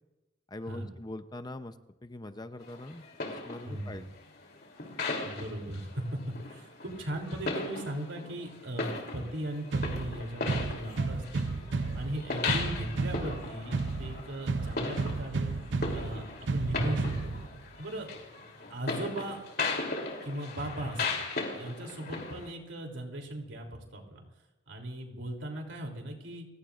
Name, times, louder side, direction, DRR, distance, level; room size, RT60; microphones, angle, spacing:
voice 1, 0.5-1.8 2.0-4.0, left 1 dB, 20° left, 10 dB, 0.7 m, -42 dB
sound 1, 2.6-22.5, left 3 dB, 60° left, 3.2 m, -38 dB
voice 2, 3.6-4.1 5.2-11.5 11.9-15.5 15.9-17.4 17.8-18.1 18.7-19.4 20.2-21.2 21.5-24.2 24.7-26.5, right 1 dB, 90° right, 2 dB, 3.2 m, -38 dB
sound 2, 9.7-17.7, right 3 dB, 75° right, 0.6 m, -33 dB
29.5 x 16.5 x 2.5 m, 1.0 s
head